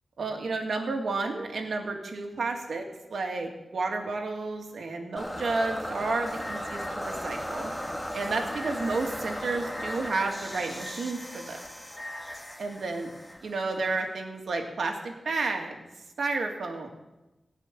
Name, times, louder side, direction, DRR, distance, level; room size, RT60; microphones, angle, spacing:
voice 1, 0.2-7.7 8.1-11.6 12.6-13.1 13.4-15.7 16.2-16.9, right 3 dB, 85° right, 3 dB, 2.1 m, -31 dB
sound 1, 5.2-14.2, equal, 10° left, 2.2 m, -36 dB
16.5 x 5.7 x 9.2 m, 1.0 s
cardioid pair, 50°, 0 cm